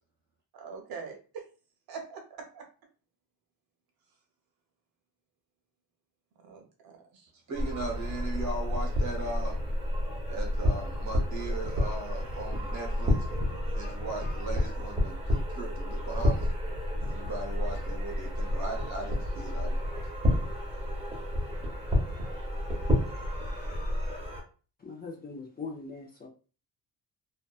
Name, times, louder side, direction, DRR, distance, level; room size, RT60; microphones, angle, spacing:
voice 1, 0.5-1.5 1.9-2.7 6.4-7.3, right 5 dB, 65° right, 0.7 m, -43 dB
sound 1, 7.5-24.4, left 1 dB, 15° right, 0.8 m, -30 dB
voice 2, 7.5-9.6 10.3-13.3 13.7-16.5 17.0-20.0, right 3 dB, 45° right, 1.0 m, -38 dB
voice 3, 24.8-26.3, left 4 dB, 25° left, 0.6 m, -41 dB
2.6 x 2.2 x 2.3 m
cardioid pair, 140°, 39 cm